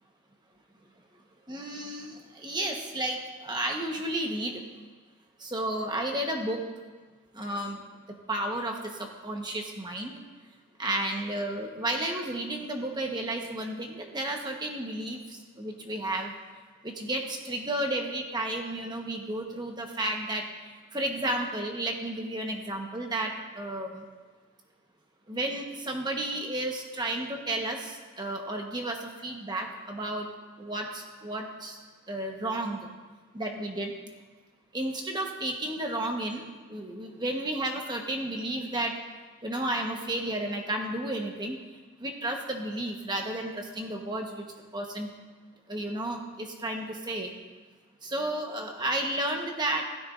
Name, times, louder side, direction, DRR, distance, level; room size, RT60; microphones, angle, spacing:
voice 1, 1.5-4.6 5.4-6.7 7.3-7.8 8.3-10.2 10.8-16.3 16.8-20.5 20.9-24.0 25.3-30.3 30.6-31.8 32.1-32.9 33.3-33.9 34.7-39.0 39.4-41.6 42.0-44.4 44.7-45.1 45.7-47.3 48.0-49.8, right 1 dB, 20° right, 1 dB, 1.2 m, -32 dB
16.0 x 13.0 x 2.6 m, 1.4 s
head